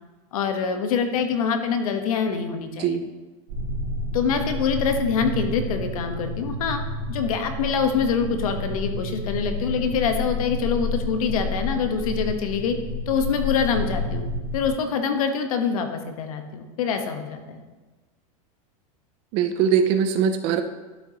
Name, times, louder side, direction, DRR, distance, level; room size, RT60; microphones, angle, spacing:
voice 1, 0.3-3.0 4.1-6.8 7.1-12.8 13.1-14.2 14.5-17.6, left 6 dB, 75° left, 6 dB, 1.1 m, -25 dB
sound 1, 3.5-14.7, left 1 dB, 60° right, 2.5 m, -30 dB
voice 2, 19.3-20.6, right 7 dB, 30° right, 9 dB, 0.4 m, -21 dB
12.0 x 5.8 x 2.9 m, 1.2 s
supercardioid pair, 170°, 18 cm